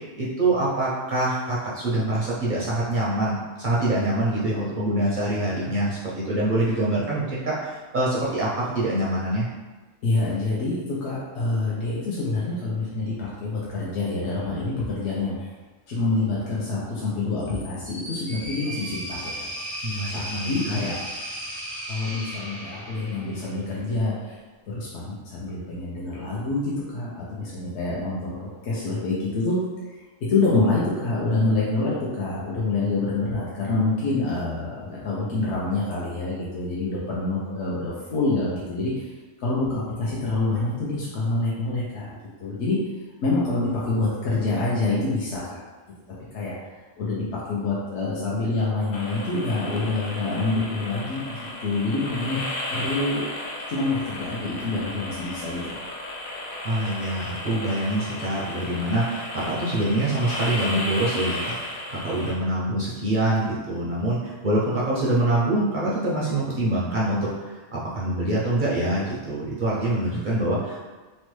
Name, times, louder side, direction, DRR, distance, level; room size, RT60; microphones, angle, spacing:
voice 1, 0.1-9.5 19.8-20.8 56.6-70.8, right 1 dB, 55° right, -7 dB, 0.5 m, -25 dB
voice 2, 10.0-15.5 15.9-19.5 20.1-21.0 21.9-24.4 24.7-29.6 29.9-30.0 30.3-39.1 39.4-42.8 43.2-45.6 46.3-46.5 47.0-52.5 52.7-53.3 53.7-55.6, left 3 dB, 65° left, -6 dB, 0.8 m, -26 dB
sound 1, 17.4-23.6, right 1 dB, ahead, 0.5 m, -35 dB
sound 2, 48.9-62.3, left 1 dB, 90° left, 0.3 m, -34 dB
3.0 x 2.1 x 3.0 m, 1.3 s
omnidirectional pair, 1.3 m